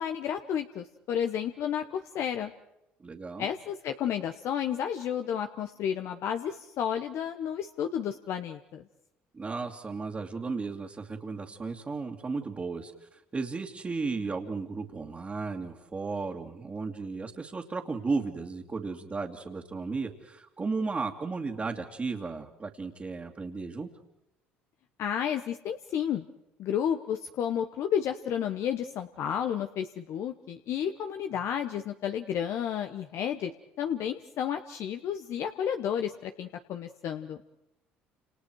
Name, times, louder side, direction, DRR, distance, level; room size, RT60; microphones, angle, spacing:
voice 1, 0.0-2.5 3.4-8.8 25.0-26.2 26.6-33.5 33.8-37.4, left 9 dB, 60° left, 7 dB, 1.3 m, -31 dB
voice 2, 3.0-3.5 9.3-23.9, right 4 dB, 30° right, -2 dB, 2.5 m, -34 dB
30.0 x 28.0 x 4.8 m, 0.87 s
hypercardioid pair, 70°, 5 cm